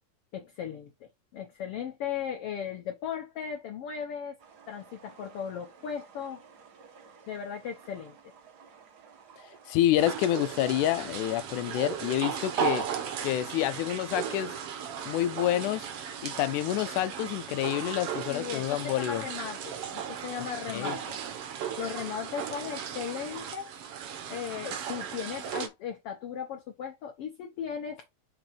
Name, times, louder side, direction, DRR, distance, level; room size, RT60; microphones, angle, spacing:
voice 1, 0.3-4.4 4.7-6.4 7.3-8.3 18.3-21.2 21.8-23.7 24.3-28.1, left 8 dB, 60° left, 1.6 m, -37 dB
sound 1, 4.4-10.8, right 6 dB, 85° right, 0.9 m, -55 dB
voice 2, 9.7-12.9 13.2-14.6 15.1-15.9 16.2-19.2 20.7-21.0, left 13 dB, 90° left, 2.1 m, -28 dB
sound 2, 10.0-25.7, right 8 dB, 60° right, 1.8 m, -36 dB
5.8 x 3.6 x 5.1 m
omnidirectional pair, 3.5 m